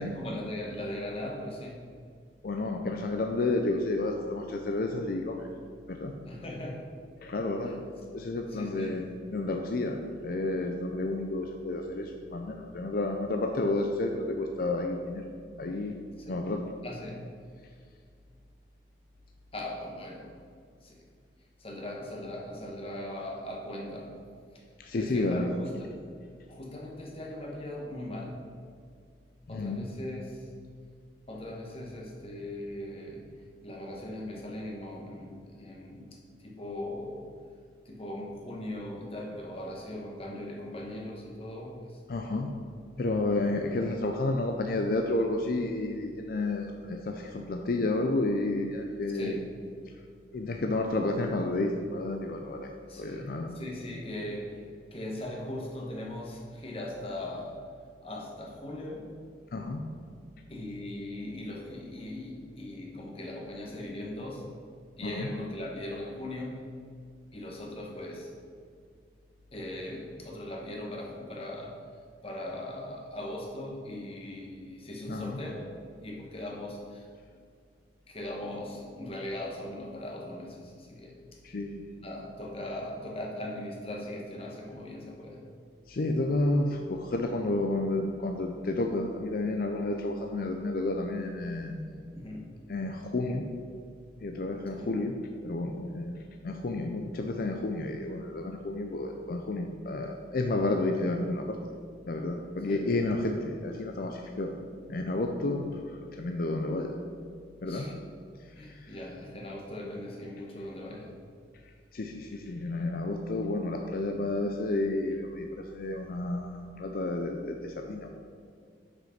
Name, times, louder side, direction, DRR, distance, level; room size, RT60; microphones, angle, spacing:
voice 1, 0.0-1.8 6.3-6.9 7.6-7.7 8.1-8.2 8.5-9.0 16.2-16.4 16.8-17.2 19.5-20.3 20.8-21.0 21.6-24.1 24.5-24.6 24.9-26.0 26.5-28.4 29.5-30.5 31.3-33.3 33.6-37.3 37.8-42.0 49.1-49.4 52.9-54.6 54.9-57.6 58.0-59.1 60.5-64.5 65.0-66.6 67.3-68.3 69.5-71.8 72.2-75.7 76.0-77.1 78.1-81.1 82.0-85.4 92.1-92.5 94.8-94.9 102.7-102.8 107.7-107.9 108.5-111.1, left 1 dB, 30° left, -1 dB, 1.2 m, -39 dB
voice 2, 2.4-5.5 5.9-6.2 7.2-15.3 15.6-16.0 16.3-16.7 24.8-25.5 29.5-29.9 42.1-42.5 43.0-49.5 50.3-52.7 53.0-53.6 59.5-59.8 65.0-65.3 75.1-75.4 81.4-81.9 85.9-92.0 92.7-93.5 94.2-95.2 95.4-96.2 96.4-101.6 102.1-104.6 104.9-107.0 107.6-107.9 108.6-109.0 111.9-118.1, left 2 dB, 50° left, 3 dB, 0.4 m, -31 dB
6.1 x 5.2 x 5.7 m, 2.2 s
head